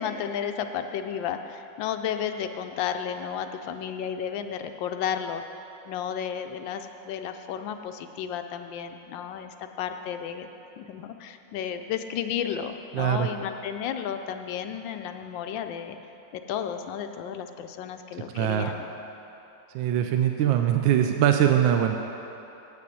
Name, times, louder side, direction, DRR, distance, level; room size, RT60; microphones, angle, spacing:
voice 1, 0.0-5.4 5.9-10.5 10.8-16.0 16.3-18.9, left 8 dB, 80° left, 7 dB, 1.3 m, -33 dB
voice 2, 12.9-13.3 18.3-18.7 19.7-22.0, right 10 dB, 80° right, 5 dB, 1.3 m, -22 dB
8.5 x 6.7 x 8.4 m, 3.0 s
omnidirectional pair, 2.1 m